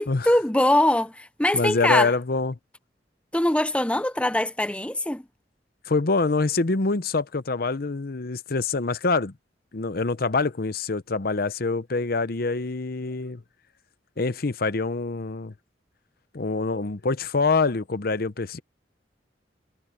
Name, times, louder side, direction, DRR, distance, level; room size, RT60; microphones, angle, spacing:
voice 1, 0.0-2.1 3.3-5.2, left 1 dB, 5° left, 0.6 m, -22 dB
voice 2, 1.5-2.6 5.9-9.3 9.7-13.4 14.2-15.5 16.3-18.6, left 3 dB, 55° left, 0.8 m, -25 dB
head